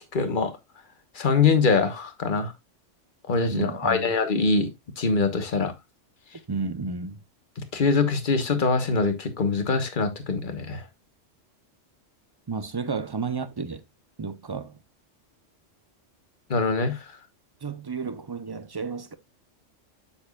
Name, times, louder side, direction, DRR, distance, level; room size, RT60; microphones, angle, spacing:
voice 1, 0.1-0.5 1.1-2.5 3.3-4.7 5.0-5.7 7.7-10.8 16.5-17.0, left 4 dB, 45° left, 1.3 m, -23 dB
voice 2, 3.5-4.1 6.5-7.2 12.5-13.8 14.2-14.8 17.6-19.1, right 4 dB, 30° right, 0.5 m, -32 dB
8.8 x 7.3 x 2.3 m
omnidirectional pair, 1.3 m